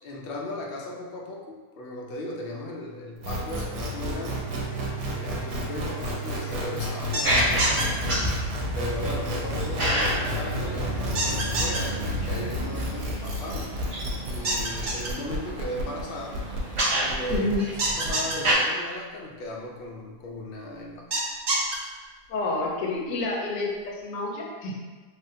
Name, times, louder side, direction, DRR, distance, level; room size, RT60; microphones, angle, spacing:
voice 1, 0.0-4.4 5.1-8.0 8.7-13.7 14.2-16.4 17.0-21.0, left 1 dB, 90° left, -2 dB, 0.5 m, -36 dB
sound 1, 3.2-18.1, equal, 85° right, 1.1 m, -32 dB
sound 2, 7.1-7.8 11.1-11.8 14.4-15.1 17.8-18.3 21.1-21.7, right 2 dB, 70° right, 1.0 m, -26 dB
sound 3, 7.2-18.5, equal, 50° right, 0.3 m, -30 dB
voice 2, 17.3-17.6 22.3-24.8, left 2 dB, 70° left, -2 dB, 0.9 m, -29 dB
3.4 x 2.2 x 2.6 m, 1.3 s
omnidirectional pair, 1.5 m